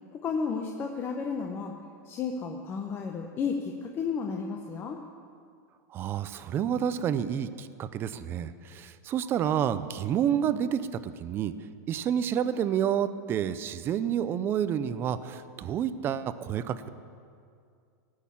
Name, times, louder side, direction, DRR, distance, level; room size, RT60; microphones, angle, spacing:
voice 1, 0.1-1.7 2.0-5.0, left 5 dB, 25° left, 3 dB, 0.8 m, -32 dB
voice 2, 5.9-11.5 11.9-16.9, right 9 dB, 25° right, 13 dB, 0.5 m, -29 dB
16.5 x 6.5 x 8.5 m, 2.3 s
supercardioid pair, 150°, 9 cm